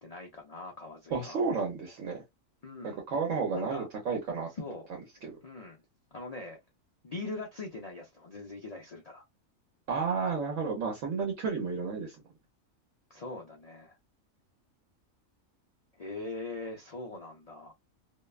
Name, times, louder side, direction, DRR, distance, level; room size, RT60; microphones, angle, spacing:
voice 1, 0.0-1.4 2.6-3.0 3.5-3.9 4.5-4.9 5.4-5.8 6.1-6.6 7.0-9.3 13.1-14.0 16.0-17.7, left 2 dB, 60° left, 0.4 m, -41 dB
voice 2, 1.1-2.2 2.8-4.5 5.2-5.4 9.9-12.2, right 5 dB, 70° right, 1.1 m, -32 dB
2.7 x 2.1 x 2.3 m
omnidirectional pair, 1.4 m